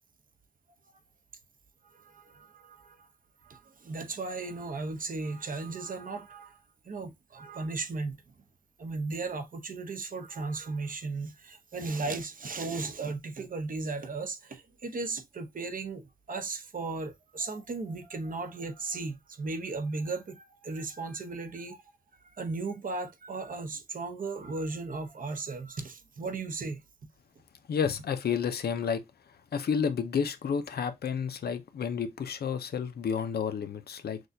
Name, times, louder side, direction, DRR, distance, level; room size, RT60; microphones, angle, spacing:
voice 1, 1.8-3.1 3.4-6.6 6.8-8.2 8.8-21.8 22.2-26.8, right 3 dB, 60° right, 0.8 m, -36 dB
voice 2, 27.7-29.0 29.5-34.2, left 7 dB, 75° left, 0.6 m, -30 dB
6.1 x 2.3 x 2.6 m
wide cardioid pair, 100°, 16 cm